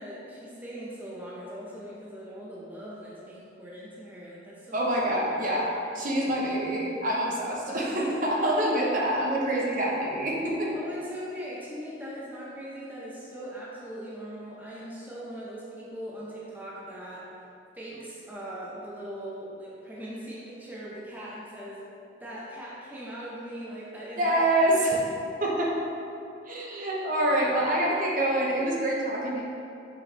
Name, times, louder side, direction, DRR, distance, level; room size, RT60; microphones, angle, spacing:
voice 1, 0.0-4.9 9.6-9.7 10.7-17.2 17.7-21.9 22.2-25.0, equal, 10° right, -7 dB, 0.8 m, -40 dB
voice 2, 4.7-5.7 5.9-10.7 24.2-24.9 25.4-25.7 26.5-29.4, right 1 dB, 45° right, -4 dB, 0.9 m, -26 dB
7.0 x 4.6 x 3.4 m, 2.7 s
head